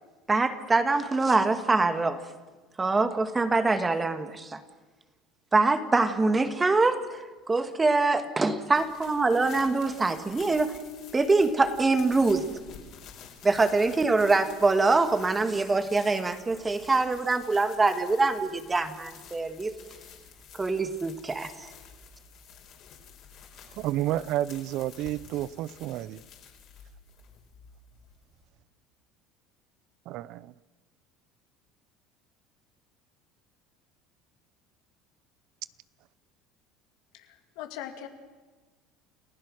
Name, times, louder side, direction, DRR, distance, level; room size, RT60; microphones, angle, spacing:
voice 1, 0.3-2.2 2.8-4.6 5.5-10.8 11.1-12.5 13.4-19.7 20.5-21.7, right 3 dB, 15° right, 1.6 m, -24 dB
sound 1, 8.7-28.5, left 7 dB, 55° left, 4.6 m, -50 dB
voice 2, 23.7-26.2 30.1-30.5, right 14 dB, 60° right, 0.5 m, -30 dB
voice 3, 37.1-38.1, left 11 dB, 75° left, 2.5 m, -40 dB
29.5 x 15.5 x 6.3 m
supercardioid pair, 110°, 0 cm